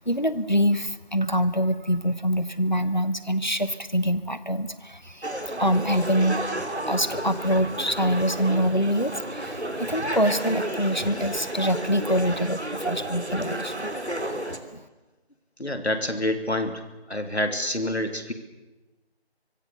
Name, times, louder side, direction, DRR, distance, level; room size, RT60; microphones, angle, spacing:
voice 1, 0.1-6.4 6.9-13.9 14.7-14.8, equal, 45° left, 14 dB, 1.1 m, -25 dB
sound 1, 5.2-14.6, right 1 dB, 85° right, 3.0 m, -32 dB
voice 2, 15.6-16.8 17.1-18.3, left 1 dB, 75° left, 7 dB, 3.0 m, -27 dB
25.0 x 23.0 x 6.9 m, 1.1 s
figure-of-eight pair, 180°, 33 cm